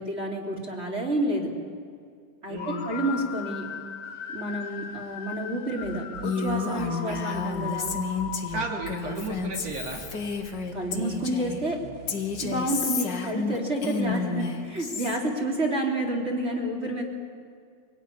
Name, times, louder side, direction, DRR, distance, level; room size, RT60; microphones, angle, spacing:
voice 1, 0.0-1.5 2.4-3.6 4.3-7.9 10.7-11.8 12.4-17.0, right 1 dB, 20° right, -1 dB, 3.3 m, -29 dB
voice 2, 2.5-2.9 7.1-7.2 8.5-10.0 14.0-14.2, right 2 dB, 50° right, 0 dB, 3.8 m, -33 dB
sound 1, 2.6-9.0, left 7 dB, 85° left, 3.1 m, -38 dB
sound 2, 5.8-12.7, right 5 dB, 85° right, 3.9 m, -44 dB
Female speech woman speaking, 6.2-11.6 12.1-15.2, left 4 dB, 40° left, 2.0 m, -31 dB
25.5 x 18.0 x 9.9 m, 2.2 s
omnidirectional pair, 3.6 m